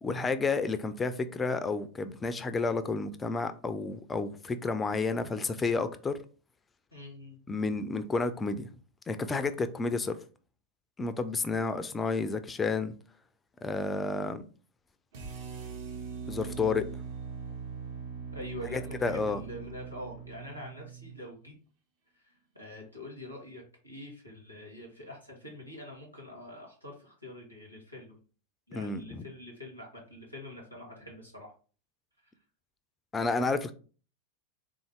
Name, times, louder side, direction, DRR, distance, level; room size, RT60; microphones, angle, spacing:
voice 1, 0.0-6.2 7.5-8.7 9.1-10.1 11.0-13.0 13.6-14.4 16.3-16.9 18.7-19.4 28.7-29.3 33.1-33.7, left 4 dB, 15° left, 0.3 m, -31 dB
voice 2, 6.9-7.4 18.3-21.5 22.2-28.2 28.7-31.5 32.2-32.3, left 1 dB, 90° right, 1.2 m, -45 dB
sound 1, 15.1-21.3, right 6 dB, 55° right, 0.9 m, -41 dB
3.5 x 2.7 x 3.1 m
figure-of-eight pair, 90°, 0 cm